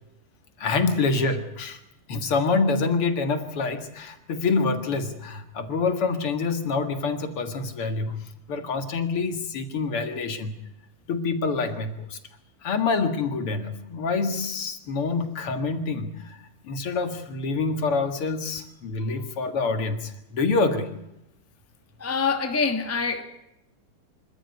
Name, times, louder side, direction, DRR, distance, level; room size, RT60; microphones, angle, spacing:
voice 1, 0.6-1.8 2.1-10.5 11.1-12.2 12.6-16.4 16.6-20.9, left 4 dB, 50° left, 2.5 m, -26 dB
voice 2, 22.0-23.2, left 5 dB, 10° left, 1.0 m, -25 dB
26.0 x 13.5 x 9.6 m
omnidirectional pair, 3.4 m